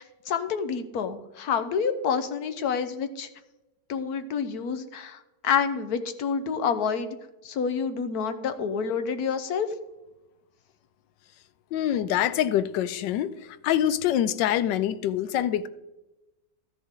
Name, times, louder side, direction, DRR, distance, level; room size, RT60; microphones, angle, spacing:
voice 1, 0.0-3.3 3.9-7.2 7.4-9.7, left 6 dB, 65° left, 9 dB, 1.3 m, -28 dB
voice 2, 11.7-13.3 13.6-15.7, left 11 dB, 85° left, 14 dB, 1.3 m, -25 dB
13.0 x 10.5 x 3.7 m, 1.0 s
omnidirectional pair, 1.9 m